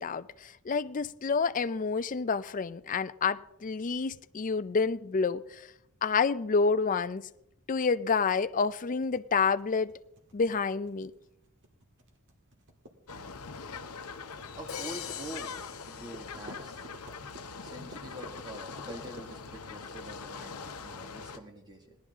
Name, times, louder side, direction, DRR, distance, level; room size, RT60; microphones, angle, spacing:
voice 1, 0.0-5.7 6.0-7.3 7.7-9.9 10.3-11.1, left 5 dB, 35° left, 0.4 m, -29 dB
sound 1, 9.0-20.6, right 1 dB, 55° right, 1.8 m, -52 dB
sound 2, 13.1-21.4, left 5 dB, 85° left, 0.9 m, -43 dB
voice 2, 14.6-15.5 15.9-16.9 17.6-22.0, right 1 dB, 20° right, 1.9 m, -45 dB
Crash cymbal, 14.7-16.9, left 8 dB, 65° left, 1.2 m, -42 dB
18.0 x 11.5 x 3.7 m
head